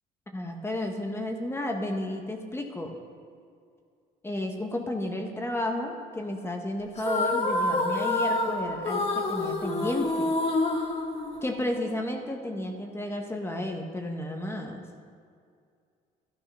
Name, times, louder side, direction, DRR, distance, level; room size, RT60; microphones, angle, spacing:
voice 1, 0.3-3.0 4.2-10.3 11.4-14.8, left 1 dB, 15° left, 3 dB, 1.3 m, -32 dB
sound 1, 7.0-11.8, left 2 dB, 40° left, 2.0 m, -28 dB
12.5 x 11.5 x 5.5 m, 2.3 s
cardioid pair, 110°, 17 cm